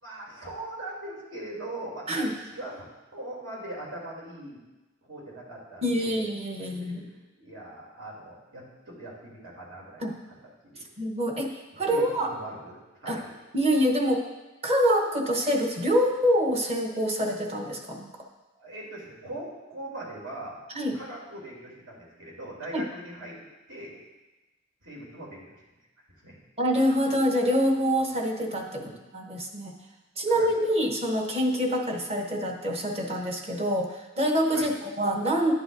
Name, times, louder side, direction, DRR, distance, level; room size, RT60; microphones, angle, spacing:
voice 1, 0.0-2.8 3.1-4.6 5.0-6.2 6.8-10.0 10.6-10.9 11.9-13.3 18.5-20.6 20.9-23.4 23.7-24.0 24.8-25.6 26.2-26.4 28.7-28.9 30.3-30.5 34.5-34.7, right 1 dB, 80° right, -4 dB, 2.9 m, -41 dB
voice 2, 5.8-7.0 10.0-10.1 11.0-12.3 13.1-13.2 13.5-14.2 14.6-18.1 20.7-21.0 22.7-22.8 26.6-28.8 29.1-29.8 30.2-35.5, equal, 30° right, 2 dB, 1.0 m, -26 dB
11.0 x 7.9 x 2.6 m, 1.1 s
head